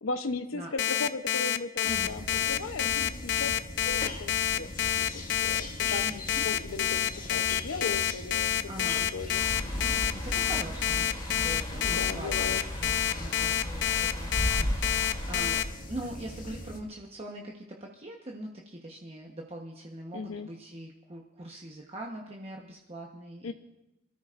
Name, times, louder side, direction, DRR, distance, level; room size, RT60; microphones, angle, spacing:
voice 1, 0.0-3.5 3.9-4.7 5.1-9.4 11.7-12.6 20.1-20.5 23.4-23.5, left 3 dB, 90° left, 8 dB, 0.8 m, -37 dB
Alarm, 0.8-15.6, left 11 dB, 60° left, 0.4 m, -27 dB
sound 1, 1.8-16.8, left 1 dB, 45° left, 1.7 m, -41 dB
voice 2, 6.0-6.6 8.3-8.4 8.7-9.1 10.1-15.6 15.9-23.5, right 1 dB, 30° right, -1 dB, 1.1 m, -42 dB
sound 2, 9.3-15.6, equal, 20° left, 2.9 m, -35 dB
28.0 x 13.5 x 2.5 m, 0.89 s
head